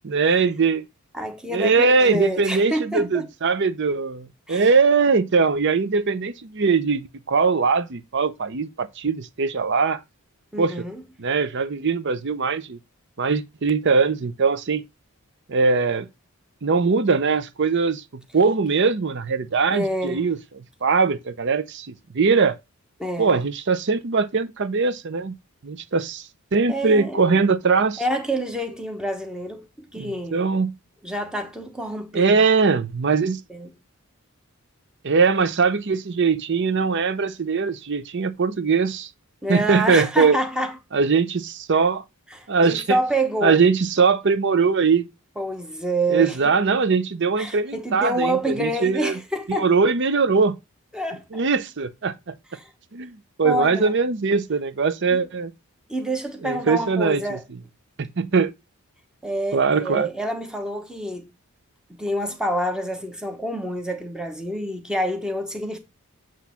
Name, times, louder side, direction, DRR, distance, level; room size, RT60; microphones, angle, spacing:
voice 1, 0.0-0.8 1.5-10.0 10.6-10.9 11.2-12.8 13.2-14.8 15.5-16.1 16.6-20.4 20.8-22.6 23.2-25.3 25.6-26.2 26.5-28.0 30.0-30.7 32.1-33.4 35.0-39.1 39.5-40.4 40.9-42.0 42.5-43.0 43.4-45.1 46.1-49.2 49.5-50.6 51.3-52.3 52.9-55.5 56.4-57.2 58.0-58.5 59.5-60.1, right 4 dB, 50° right, 0.6 m, -21 dB
voice 2, 1.1-3.3 4.5-4.7 10.5-11.0 19.7-20.2 23.0-23.3 26.7-27.4 28.0-30.4 31.0-32.4 33.5-33.7 39.4-40.8 42.3-43.6 45.4-46.5 47.4-49.7 50.9-51.4 52.5-52.7 53.4-53.9 55.1-55.2 55.9-57.4 59.2-61.3 62.0-65.8, right 1 dB, 5° right, 1.0 m, -27 dB
8.2 x 3.0 x 5.7 m
head